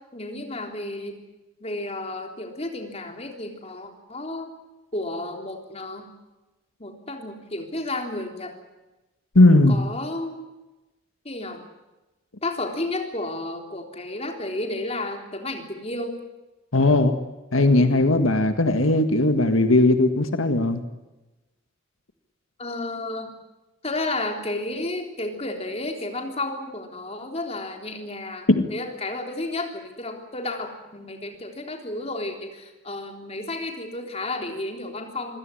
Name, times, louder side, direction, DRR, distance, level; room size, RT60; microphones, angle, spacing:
voice 1, 0.1-1.1 1.6-4.5 4.9-6.1 6.8-8.5 9.7-10.5 11.3-11.6 12.4-16.2 22.6-23.3 23.8-35.4, left 2 dB, 30° left, 3 dB, 3.6 m, -32 dB
voice 2, 9.3-9.8 16.7-17.1 17.5-20.8 28.5-28.6, left 2 dB, 85° left, 8 dB, 1.7 m, -18 dB
26.0 x 17.0 x 10.0 m, 1.1 s
head